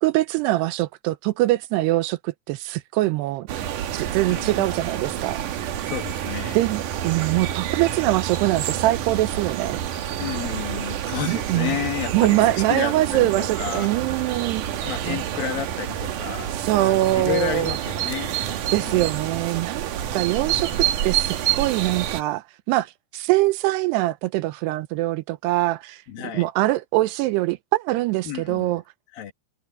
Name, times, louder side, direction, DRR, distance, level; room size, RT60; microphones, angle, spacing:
voice 1, 0.0-3.5 3.9-5.4 6.5-9.8 11.3-11.8 12.1-15.2 16.6-17.7 18.7-26.0 26.3-28.8, right 17 dB, 80° right, 2.7 m, -23 dB
sound 1, 3.5-22.2, right 10 dB, 65° right, 2.3 m, -28 dB
voice 2, 4.3-4.6 5.8-6.6 10.2-13.9 14.3-14.5 14.8-18.4 18.8-19.1 26.1-26.5 28.2-28.7 29.1-29.3, left 10 dB, 65° left, 3.1 m, -31 dB
omnidirectional pair, 4.9 m